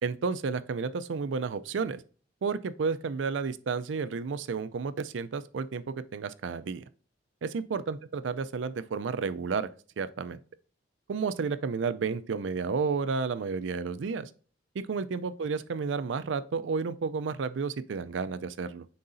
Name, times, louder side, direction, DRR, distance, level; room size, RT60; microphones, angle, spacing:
voice 1, 0.0-2.0 2.4-6.8 7.4-9.7 10.0-10.4 11.1-14.3 14.9-18.9, right 5 dB, 90° right, 0.4 m, -31 dB
9.4 x 3.8 x 2.6 m
head